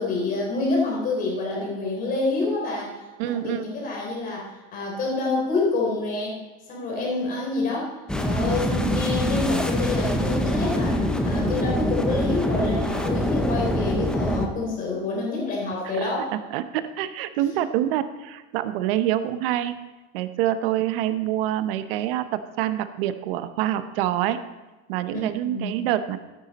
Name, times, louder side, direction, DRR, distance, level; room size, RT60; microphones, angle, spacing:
voice 1, 0.0-3.0 3.3-6.4 6.7-16.3 25.1-25.2 25.5-25.7, left 3 dB, 30° left, -2 dB, 3.6 m, -27 dB
voice 2, 3.2-3.7 15.8-16.1 16.5-19.8 20.1-24.4 24.9-26.2, right 12 dB, 70° right, 11 dB, 0.9 m, -26 dB
sound 1, 8.1-14.5, equal, 5° left, 0.5 m, -24 dB
13.0 x 9.5 x 4.2 m, 1.2 s
supercardioid pair, 160°, 30 cm